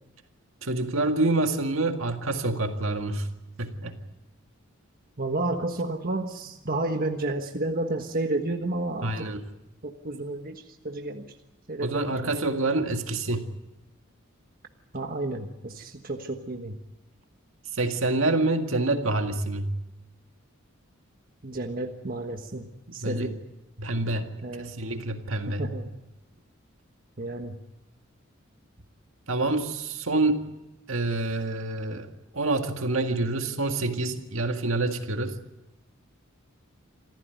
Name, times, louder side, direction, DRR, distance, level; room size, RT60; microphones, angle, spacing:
voice 1, 0.6-3.3 3.6-4.0 9.0-9.4 11.8-13.5 17.7-19.7 23.0-23.3 23.8-24.3 24.6-25.7 29.3-30.6 30.9-32.1 32.3-35.4, right 2 dB, 70° right, 5 dB, 1.9 m, -27 dB
voice 2, 5.2-9.3 9.8-11.3 11.7-12.3 14.9-16.8 21.4-23.4 24.4-24.7 25.5-25.9 27.2-27.5, right 2 dB, 45° right, 4 dB, 1.4 m, -31 dB
26.5 x 14.5 x 9.2 m, 0.96 s
head